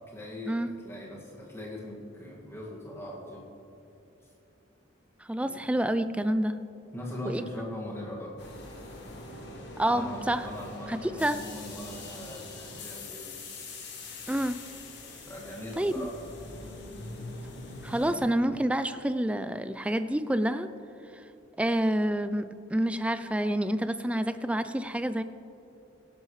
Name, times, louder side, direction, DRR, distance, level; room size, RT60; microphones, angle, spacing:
voice 1, 0.0-3.5 5.4-5.6 6.9-8.4 9.9-13.3 15.3-16.1, left 1 dB, 15° left, -4 dB, 2.0 m, -40 dB
voice 2, 5.3-6.6 7.3-7.4 9.8-10.5 10.9-11.4 14.3-14.6 15.8-16.1 17.8-20.7 21.6-25.2, right 1 dB, 5° right, 11 dB, 0.3 m, -28 dB
sound 1, 8.4-18.2, left 2 dB, 60° left, 1.9 m, -43 dB
17.5 x 11.5 x 3.2 m, 2.8 s
head